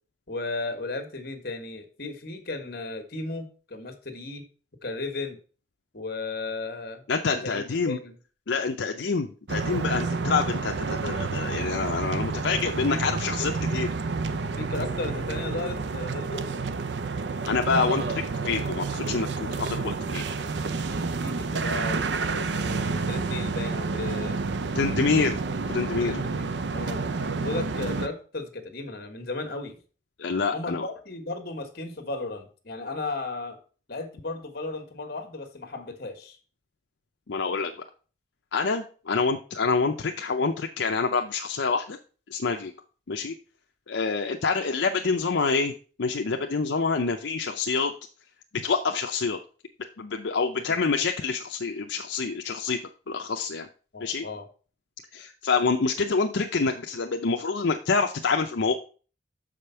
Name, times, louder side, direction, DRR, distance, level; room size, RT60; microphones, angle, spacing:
voice 1, 0.3-4.4 4.8-5.4 5.9-8.1 12.9-13.0 13.4-13.5 14.6-16.4 20.8-24.4 25.1-25.2 26.0-27.0 27.4-29.8 30.5-33.6 33.9-36.4 50.6-50.8 53.9-54.4, left 3 dB, 55° left, 6 dB, 1.4 m, -35 dB
voice 2, 7.1-8.0 8.5-13.9 17.5-20.2 24.7-25.4 25.7-26.1 30.2-30.9 37.3-37.7 38.5-42.0 42.3-42.7 43.1-43.3 43.9-47.9 48.6-49.4 50.0-52.8 53.1-53.7 54.0-54.3 55.1-58.8, left 4 dB, 75° left, 4 dB, 0.6 m, -27 dB
sound 1, 9.5-28.1, right 4 dB, 70° right, 0.6 m, -29 dB
6.9 x 5.1 x 5.6 m, 0.39 s
head